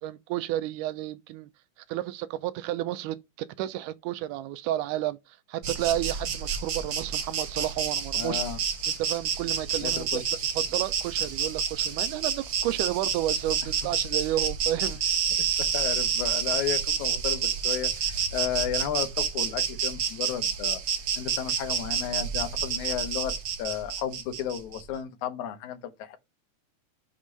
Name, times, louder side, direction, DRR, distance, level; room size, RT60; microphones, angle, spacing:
voice 1, 0.0-1.5 1.9-5.2 5.5-8.4 9.0-10.2 10.6-15.0, right 13 dB, 85° right, 2.1 m, -31 dB
Insect, 5.6-24.8, right 7 dB, 65° right, 1.3 m, -29 dB
voice 2, 8.2-8.6 9.8-10.3 15.4-20.8 21.2-26.2, left 10 dB, 75° left, 2.1 m, -33 dB
6.3 x 3.6 x 5.5 m
omnidirectional pair, 3.6 m